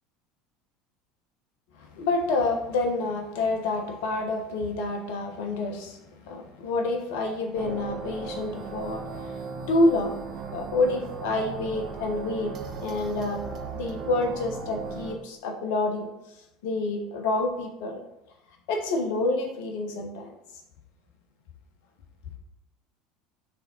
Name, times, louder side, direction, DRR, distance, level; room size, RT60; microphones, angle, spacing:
voice 1, 1.8-10.2 10.5-12.5 12.8-13.4 13.7-16.1 16.6-18.0 18.7-20.3, left 2 dB, 65° left, 3 dB, 1.1 m, -28 dB
sound 1, 7.5-15.1, right 5 dB, 45° right, 0.9 m, -37 dB
6.0 x 3.6 x 4.3 m, 0.87 s
figure-of-eight pair, 70°, 0 cm